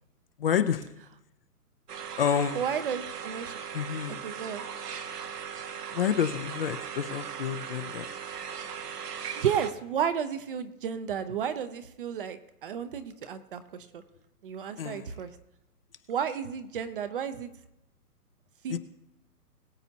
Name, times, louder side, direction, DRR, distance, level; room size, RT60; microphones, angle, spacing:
voice 1, 0.4-0.9 2.2-2.6 3.7-4.2 5.9-8.1 14.8-15.1 18.7-18.8, left 8 dB, 40° left, 9 dB, 0.6 m, -29 dB
sound 1, 1.9-9.7, right 7 dB, 75° right, 1.2 m, -38 dB
voice 2, 2.5-3.5 4.1-4.6 9.4-14.0 14.4-15.3 16.1-17.5 18.6-18.8, right 8 dB, 35° right, 10 dB, 0.7 m, -32 dB
21.5 x 8.0 x 2.8 m, 0.87 s
hypercardioid pair, 145°, 47 cm